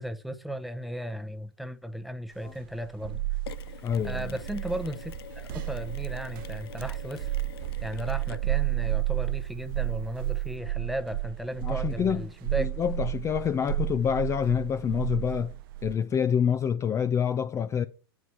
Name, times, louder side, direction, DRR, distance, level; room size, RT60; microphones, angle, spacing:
voice 1, 0.0-3.2 4.0-7.3 7.8-12.7, equal, ahead, 0.8 m, -35 dB
sound 1, 2.5-15.9, right 17 dB, 60° right, 0.5 m, -32 dB
Mechanisms, 3.5-10.6, left 8 dB, 70° left, 0.5 m, -47 dB
voice 2, 3.8-4.4 11.6-12.2 12.6-15.5 15.8-17.8, left 8 dB, 20° left, 0.5 m, -27 dB
9.4 x 4.8 x 5.7 m
hypercardioid pair, 105°, 13 cm